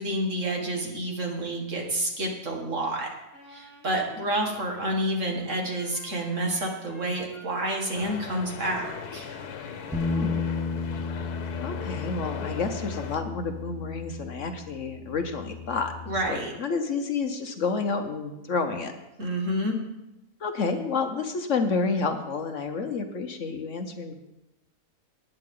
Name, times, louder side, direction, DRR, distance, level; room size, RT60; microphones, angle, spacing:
voice 1, 0.0-3.1 3.5-9.3 16.1-16.5 19.2-19.8, right 1 dB, 55° right, 0 dB, 2.2 m, -29 dB
Wind instrument woodwind instrument, 3.3-10.3, equal, 25° right, 5.2 m, -50 dB
sound 1, 7.9-13.2, left 7 dB, 85° left, 1.4 m, -39 dB
Bass guitar, 9.9-16.2, left 4 dB, 5° right, 1.2 m, -33 dB
voice 2, 10.1-10.4 11.6-15.9 16.2-18.9 20.4-24.1, left 4 dB, 55° left, 6 dB, 1.2 m, -29 dB
18.5 x 9.3 x 3.8 m, 0.93 s
omnidirectional pair, 1.6 m